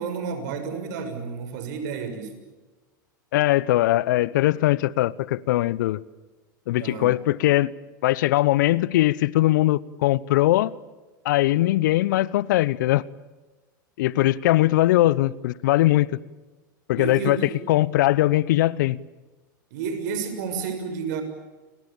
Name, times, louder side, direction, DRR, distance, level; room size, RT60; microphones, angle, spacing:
voice 1, 0.0-2.3 6.8-7.1 17.0-17.6 19.7-21.2, right 5 dB, 60° right, 6.6 m, -31 dB
voice 2, 3.3-6.0 6.7-7.7 8.0-10.7 11.2-13.0 14.0-16.1 16.9-17.4 17.7-19.0, left 16 dB, 65° left, 0.9 m, -20 dB
29.5 x 24.0 x 7.2 m
hypercardioid pair, 95°, 11 cm